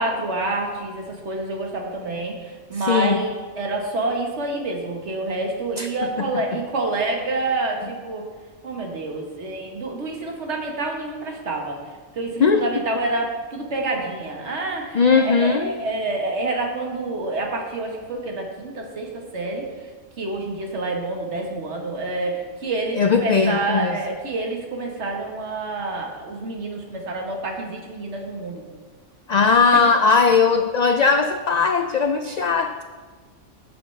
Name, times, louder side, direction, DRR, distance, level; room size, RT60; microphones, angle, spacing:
voice 1, 0.0-8.2 8.6-11.8 12.1-19.7 20.2-28.6, right 2 dB, 65° right, 1 dB, 1.7 m, -28 dB
voice 2, 2.8-3.2 5.8-5.9 6.2-6.3 12.4-12.6 14.9-15.7 22.9-24.0 29.3-32.8, left 5 dB, 70° left, 7 dB, 0.4 m, -18 dB
14.0 x 6.8 x 3.3 m, 1.4 s
omnidirectional pair, 1.3 m